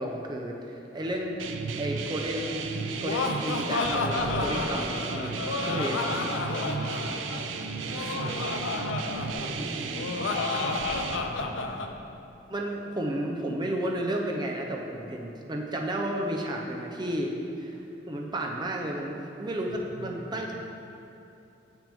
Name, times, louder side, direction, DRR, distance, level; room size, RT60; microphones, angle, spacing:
voice 1, 0.0-1.4 1.8-2.5 3.0-5.3 5.6-6.1 12.5-17.8 18.1-20.5, right 1 dB, 25° right, 0 dB, 0.5 m, -32 dB
sound 1, 1.4-11.2, right 5 dB, 85° right, 0.4 m, -34 dB
Laughter, 2.7-11.9, left 3 dB, 80° left, 0.4 m, -31 dB
voice 2, 7.8-8.4 9.0-10.4 11.2-11.8 20.0-20.4, equal, 65° right, -4 dB, 1.1 m, -42 dB
6.9 x 6.0 x 3.4 m, 2.8 s
head